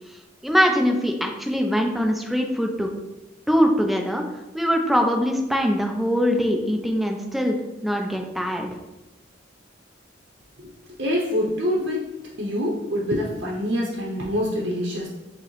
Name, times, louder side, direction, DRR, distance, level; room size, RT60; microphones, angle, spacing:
voice 1, 0.4-2.9 3.5-4.2 4.5-7.5 7.8-8.7, equal, ahead, 2 dB, 0.4 m, -22 dB
voice 2, 11.0-12.0 12.4-15.1, equal, 60° right, -4 dB, 0.7 m, -25 dB
6.0 x 2.0 x 3.0 m, 1.0 s
head